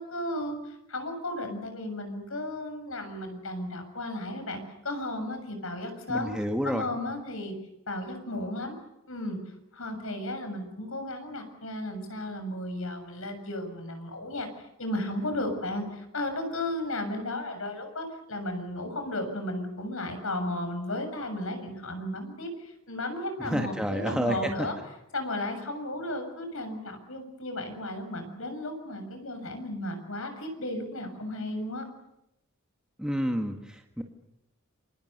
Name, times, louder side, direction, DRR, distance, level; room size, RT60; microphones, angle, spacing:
voice 1, 0.0-6.3 6.6-7.5 7.9-8.7 9.1-9.4 9.7-24.7 25.1-31.9, left 1 dB, 70° left, 7 dB, 6.9 m, -34 dB
voice 2, 6.1-6.9 23.4-24.7 33.0-34.0, equal, 5° right, 3 dB, 1.8 m, -29 dB
28.5 x 25.5 x 6.8 m, 0.84 s
head